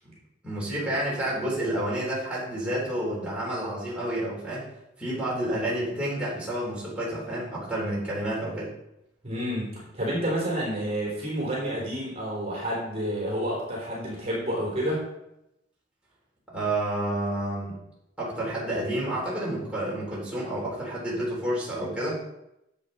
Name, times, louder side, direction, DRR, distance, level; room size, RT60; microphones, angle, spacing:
voice 1, 0.4-4.7 5.0-8.7 16.5-17.8 18.2-22.2, right 1 dB, 5° right, -7 dB, 4.0 m, -29 dB
voice 2, 9.2-15.0, equal, 35° right, -5 dB, 3.5 m, -29 dB
10.5 x 8.1 x 4.2 m, 0.84 s
head